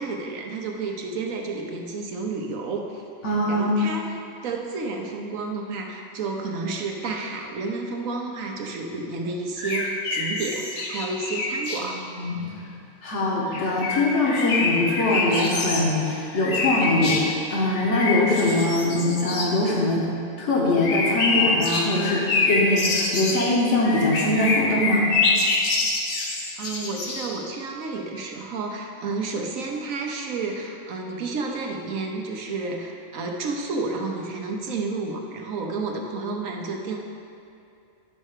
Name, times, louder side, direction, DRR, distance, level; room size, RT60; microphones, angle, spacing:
voice 1, 0.0-3.0 3.5-4.2 4.4-12.0 26.6-37.0, right 3 dB, 80° right, 2 dB, 1.3 m, -31 dB
voice 2, 3.2-3.8 11.8-12.4 13.0-20.0 20.4-25.1, left 2 dB, 60° left, -4 dB, 1.7 m, -22 dB
sound 1, 9.6-11.8 13.5-15.9 16.3-17.3 17.7-19.5 20.8-27.3, left 3 dB, 75° left, 1.4 m, -26 dB
9.9 x 4.3 x 6.6 m, 2.5 s
omnidirectional pair, 1.4 m